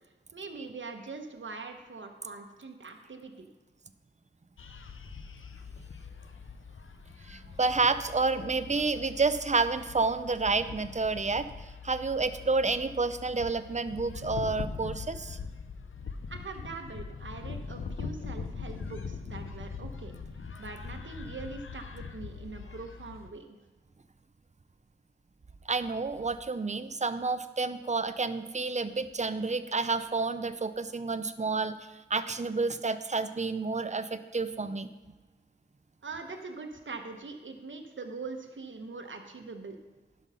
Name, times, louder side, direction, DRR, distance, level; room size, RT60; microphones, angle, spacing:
voice 1, 0.3-3.5 16.3-20.1 20.6-23.6 36.0-39.8, right 4 dB, 70° right, 4 dB, 1.1 m, -42 dB
sound 1, 4.6-23.3, left 5 dB, 90° left, 0.6 m, -42 dB
voice 2, 7.2-11.5 11.8-15.4 25.7-31.8 32.1-34.9, right 3 dB, 35° right, 12 dB, 0.6 m, -29 dB
11.0 x 5.5 x 5.6 m, 1.2 s
wide cardioid pair, 65°, 20 cm